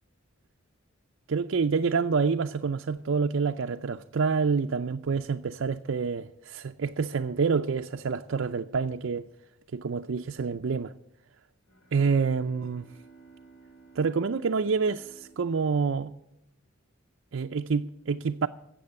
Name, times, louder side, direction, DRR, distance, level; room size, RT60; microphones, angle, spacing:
voice 1, 1.3-9.3 9.7-10.9 11.9-12.9 14.0-16.1 17.3-18.5, right 5 dB, 65° right, 0.5 m, -27 dB
Bowed string instrument, 11.6-16.6, right 4 dB, 85° left, 3.5 m, -55 dB
15.5 x 7.8 x 9.5 m
head